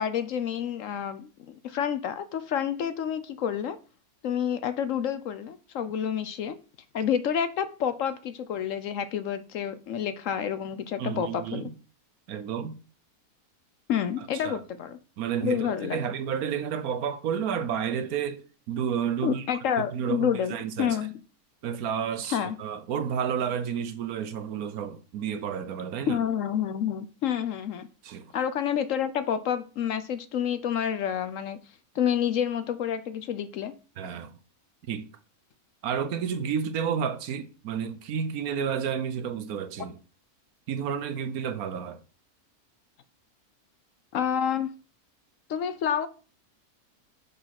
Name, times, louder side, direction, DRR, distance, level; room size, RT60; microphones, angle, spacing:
voice 1, 0.0-3.8 4.2-6.6 6.9-11.7 13.9-15.0 15.4-16.0 19.2-21.1 22.3-22.6 26.1-27.9 28.3-31.6 31.9-33.7 44.1-44.7 45.5-46.1, left 8 dB, 65° left, 0.9 m, -29 dB
voice 2, 11.0-11.8 12.3-12.8 14.3-14.6 15.2-19.4 19.9-21.0 21.6-26.2 28.0-28.3 34.0-34.3 34.9-35.1 35.8-40.0 40.7-42.0, right 7 dB, 70° right, 1.2 m, -31 dB
6.4 x 5.6 x 5.8 m
omnidirectional pair, 1.6 m